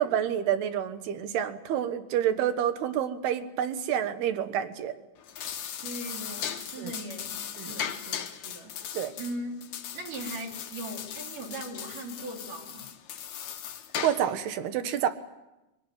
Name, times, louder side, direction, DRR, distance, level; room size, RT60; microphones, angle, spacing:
voice 1, 0.0-5.0 6.8-6.9 7.6-7.7 8.9-9.1 14.0-15.1, right 10 dB, 70° right, 10 dB, 3.1 m, -28 dB
sound 1, 5.2-14.4, left 9 dB, 70° left, 1.8 m, -38 dB
voice 2, 5.8-8.7 9.2-9.6 9.9-12.9, right 1 dB, 50° right, 1 dB, 4.6 m, -39 dB
25.0 x 18.5 x 9.5 m, 0.98 s
omnidirectional pair, 5.3 m